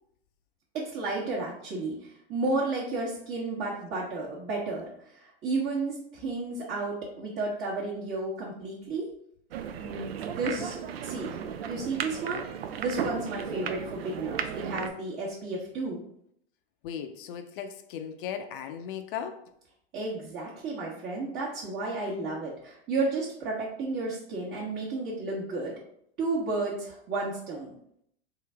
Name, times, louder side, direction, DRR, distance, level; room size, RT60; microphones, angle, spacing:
voice 1, 0.7-9.1 9.8-11.3 11.6-12.4 12.8-16.0 19.9-25.7 26.2-27.7, right 3 dB, 35° right, 1.0 m, -32 dB
sound 1, 9.5-14.9, right 8 dB, 75° right, 0.5 m, -35 dB
voice 2, 16.8-19.5, left 8 dB, 60° left, 0.5 m, -37 dB
3.8 x 2.6 x 3.3 m
hypercardioid pair, 105°, 30 cm